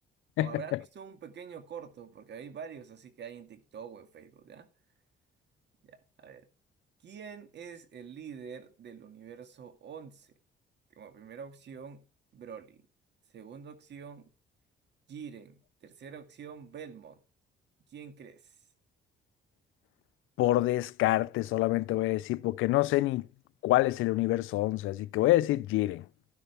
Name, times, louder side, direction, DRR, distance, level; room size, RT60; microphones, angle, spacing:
voice 1, 0.4-4.7 5.8-6.5 7.0-10.3 10.9-12.0 12.3-12.9 13.3-14.3 15.1-17.2 17.9-18.6, right 7 dB, 60° right, 2.0 m, -46 dB
voice 2, 20.4-23.3 23.6-26.0, left 16 dB, 90° left, 0.5 m, -26 dB
12.0 x 11.0 x 3.4 m
cardioid pair, 90°, 20 cm